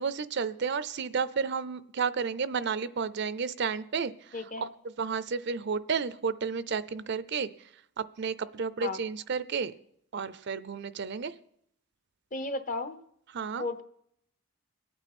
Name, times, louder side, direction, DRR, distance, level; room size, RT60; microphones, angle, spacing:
voice 1, 0.0-4.3 4.6-4.7 5.0-7.5 8.0-9.7 10.1-11.3 13.3-13.6, right 5 dB, 55° right, 15 dB, 0.5 m, -32 dB
voice 2, 4.3-4.7 8.8-9.0 12.3-13.0 13.6-13.8, left 2 dB, 40° left, 10 dB, 0.9 m, -34 dB
24.0 x 9.0 x 4.3 m, 0.72 s
head